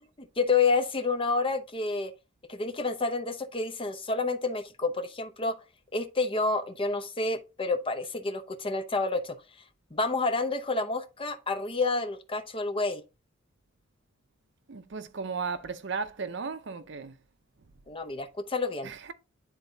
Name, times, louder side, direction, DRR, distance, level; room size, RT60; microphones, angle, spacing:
voice 1, 0.4-2.1 2.5-5.6 5.9-9.4 9.9-13.0 17.9-18.9, left 3 dB, 25° left, 0.7 m, -29 dB
voice 2, 14.7-17.1 18.8-19.1, right 5 dB, 60° right, 0.7 m, -35 dB
10.0 x 3.9 x 2.7 m
head